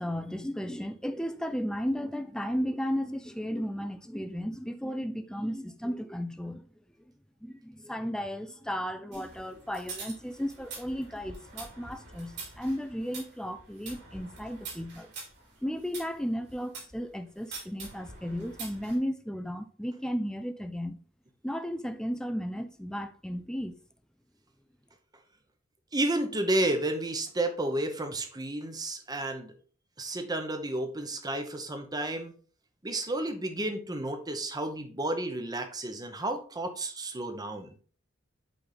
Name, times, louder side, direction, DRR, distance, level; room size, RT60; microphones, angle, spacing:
voice 1, 0.0-6.7 7.4-15.1 15.6-21.0 21.4-23.8, equal, 5° left, 0.5 m, -34 dB
sound 1, 9.1-17.0 17.5-18.9, right 3 dB, 55° right, 3.7 m, -45 dB
voice 2, 25.9-29.5 30.0-32.3 32.8-37.8, right 1 dB, 20° right, 1.0 m, -31 dB
8.6 x 3.5 x 4.0 m
head